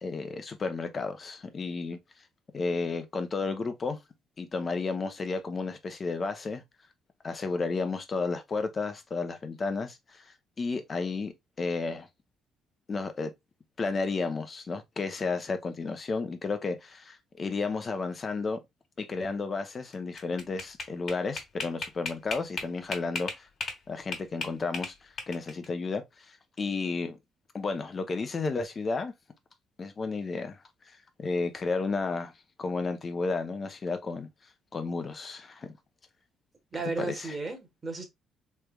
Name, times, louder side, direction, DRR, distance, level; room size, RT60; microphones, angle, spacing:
voice 1, 0.0-2.0 2.5-4.0 4.4-6.6 7.2-10.0 10.6-12.1 12.9-13.3 13.8-18.6 19.0-23.5 23.9-24.9 25.3-26.2 26.6-27.2 27.5-29.1 29.8-30.6 31.2-32.3 32.6-34.3 34.7-35.7 37.1-37.3, left 4 dB, 40° left, 0.7 m, -32 dB
sound 1, 19.9-23.8 24.1-25.6, left 4 dB, 55° left, 1.5 m, -35 dB
voice 2, 36.7-38.0, right 3 dB, 30° right, 1.3 m, -34 dB
3.3 x 3.2 x 2.3 m
supercardioid pair, 75°, 0 cm